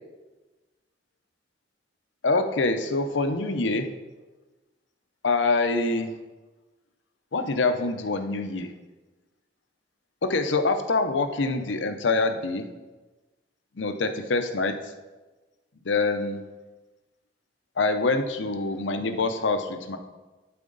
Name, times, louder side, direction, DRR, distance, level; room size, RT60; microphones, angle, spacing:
voice 1, 2.2-3.9 5.2-6.1 7.3-8.7 10.2-12.7 13.8-14.8 15.8-16.4 17.8-20.0, left 3 dB, 75° left, 7 dB, 0.7 m, -25 dB
12.0 x 4.3 x 3.9 m, 1.2 s
head